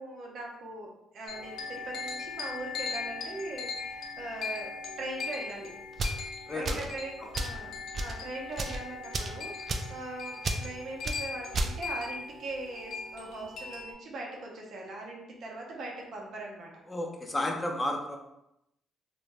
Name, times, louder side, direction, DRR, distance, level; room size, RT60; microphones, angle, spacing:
voice 1, 0.0-4.7 5.0-5.7 6.0-6.2 6.5-7.7 8.0-16.7, right 2 dB, 70° right, -1 dB, 0.7 m, -41 dB
sound 1, 1.3-13.9, left 4 dB, 80° left, 0.5 m, -39 dB
sound 2, 5.9-6.2 6.6-6.9 7.3-7.6 7.9-8.2 8.5-8.8 9.1-9.4 9.7-9.9 10.4-10.6 11.0-11.2 11.5-11.7, right 2 dB, 45° right, 0.3 m, -31 dB
voice 2, 6.5-6.9 7.2-7.3 16.9-18.2, left 1 dB, 20° left, 1 dB, 0.6 m, -32 dB
2.6 x 2.2 x 3.2 m, 0.84 s
cardioid pair, 90°, 0 cm